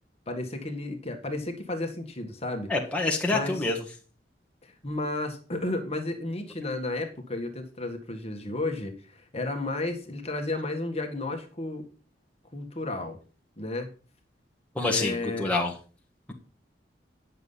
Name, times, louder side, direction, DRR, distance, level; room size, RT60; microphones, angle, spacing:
voice 1, 0.3-2.7 3.3-3.7 4.6-11.9 12.5-13.2 13.6-13.9 14.8-15.6, left 2 dB, 35° left, 4 dB, 1.7 m, -33 dB
voice 2, 2.7-3.8 14.7-15.7, left 2 dB, 10° left, -1 dB, 1.6 m, -26 dB
10.5 x 6.8 x 5.7 m, 0.38 s
head